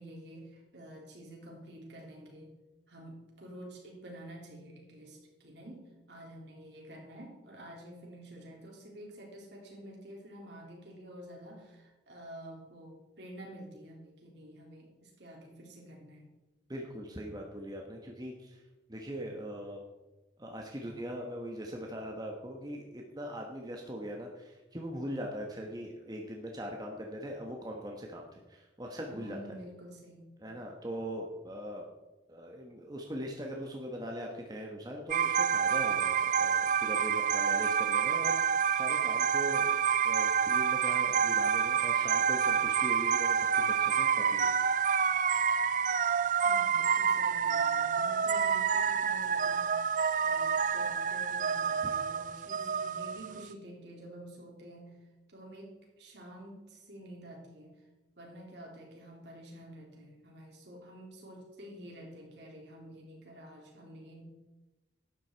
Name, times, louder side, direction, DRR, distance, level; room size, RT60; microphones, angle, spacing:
voice 1, 0.0-2.5 2.9-16.3 29.1-30.3 46.4-49.9 50.2-55.0 55.3-57.8 58.2-64.2, right 1 dB, 70° right, -1 dB, 3.5 m, -49 dB
voice 2, 16.7-18.6 18.9-19.8 20.4-29.4 30.4-31.8 32.3-44.6, equal, 20° right, 1 dB, 1.1 m, -41 dB
sound 1, 35.1-53.5, right 7 dB, 45° right, 0.4 m, -28 dB
12.0 x 9.3 x 4.5 m, 1.1 s
head